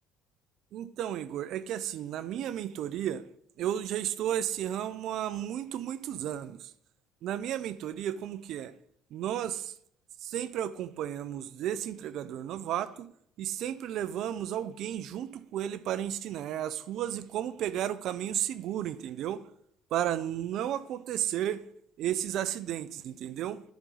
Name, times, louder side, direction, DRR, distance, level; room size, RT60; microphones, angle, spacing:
voice 1, 0.7-3.2 3.6-6.7 7.2-8.7 9.1-9.7 10.2-13.1 13.4-19.4 19.9-21.6 22.0-23.6, right 11 dB, 65° right, 0.5 m, -33 dB
10.5 x 4.9 x 5.5 m
supercardioid pair, 95°, 0 cm